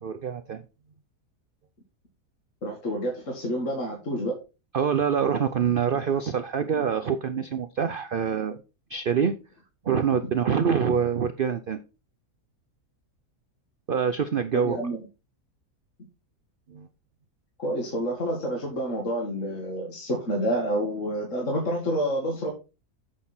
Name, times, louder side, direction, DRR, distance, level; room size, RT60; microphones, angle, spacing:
voice 1, 0.0-0.6 4.7-8.6 8.9-9.3 9.8-11.8 13.9-14.8 16.7-16.9, right 7 dB, 55° right, 10 dB, 0.6 m, -25 dB
voice 2, 2.6-4.3 14.5-15.0 17.6-22.5, equal, 50° left, 0 dB, 2.4 m, -28 dB
8.9 x 6.6 x 4.3 m, 0.30 s
omnidirectional pair, 1.6 m